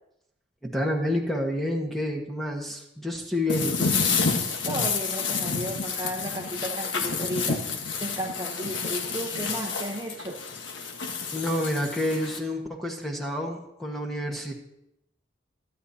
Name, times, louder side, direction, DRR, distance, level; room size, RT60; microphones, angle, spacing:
voice 1, 0.6-3.9 4.3-4.4 11.3-14.5, left 1 dB, ahead, 0 dB, 1.4 m, -29 dB
sound 1, 3.5-12.4, left 5 dB, 75° left, 1.3 m, -29 dB
voice 2, 4.6-7.7 8.0-10.4, equal, 20° right, 0 dB, 1.0 m, -34 dB
26.5 x 9.7 x 2.9 m, 0.83 s
head